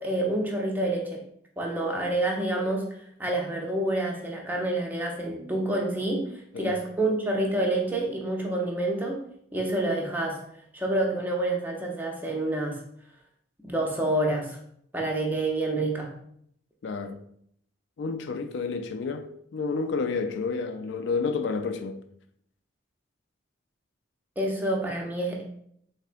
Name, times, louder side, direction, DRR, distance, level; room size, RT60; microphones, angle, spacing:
voice 1, 0.0-1.2 1.6-2.9 3.2-9.2 9.5-10.4 10.7-12.8 13.6-14.6 14.9-16.1 24.4-25.4, right 1 dB, 10° right, 0.5 m, -28 dB
voice 2, 16.8-17.2 18.0-22.0, left 4 dB, 55° left, 0.3 m, -30 dB
3.6 x 3.2 x 2.5 m
head